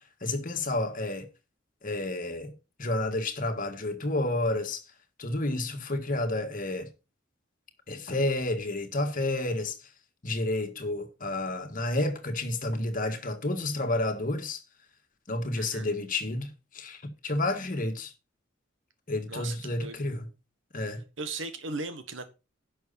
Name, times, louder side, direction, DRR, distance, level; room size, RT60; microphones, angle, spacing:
voice 1, 0.2-1.3 1.8-2.5 2.8-4.8 5.2-6.9 7.9-9.9 10.2-14.6 15.3-18.1 19.1-20.3 20.7-21.0, left 2 dB, 45° left, 1.8 m, -30 dB
voice 2, 15.5-15.9 19.3-20.1 21.2-22.3, right 3 dB, 70° right, 1.5 m, -37 dB
11.0 x 6.5 x 4.1 m
head